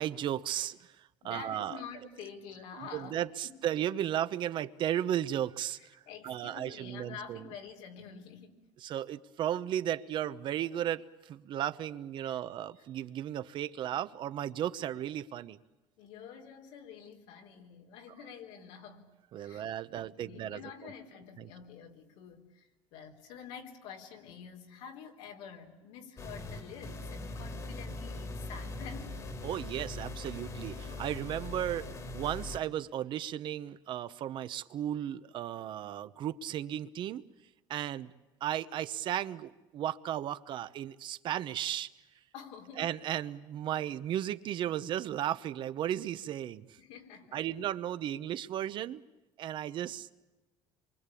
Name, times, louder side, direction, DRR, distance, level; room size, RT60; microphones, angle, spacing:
voice 1, 0.0-1.8 2.8-7.5 8.8-15.6 19.3-20.9 21.4-21.5 29.4-37.2 37.7-38.1 38.4-41.9 42.8-46.8 47.3-49.0 49.4-50.1, right 11 dB, 50° right, 0.9 m, -35 dB
voice 2, 1.2-3.6 5.8-8.6 12.2-12.4 16.0-19.1 19.4-29.2 42.3-42.9 46.8-47.4, left 7 dB, 85° left, 4.0 m, -48 dB
sound 1, 26.2-32.6, left 2 dB, 30° left, 2.1 m, -41 dB
27.0 x 24.0 x 8.5 m
cardioid pair, 140°, 11 cm